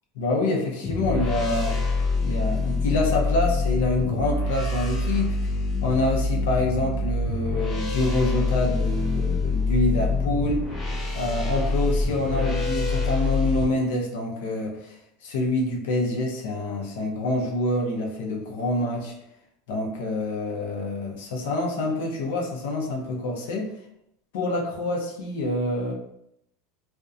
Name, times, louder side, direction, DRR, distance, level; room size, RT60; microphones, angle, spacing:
voice 1, 0.2-1.8 2.2-5.5 5.8-10.6 11.1-15.0 15.2-19.1 19.7-23.7 24.3-25.9, left 2 dB, 80° left, 0 dB, 0.6 m, -26 dB
sound 1, 0.8-13.6, left 3 dB, 20° left, 0.4 m, -25 dB
2.6 x 2.1 x 2.4 m, 0.77 s
supercardioid pair, 175°, 0 cm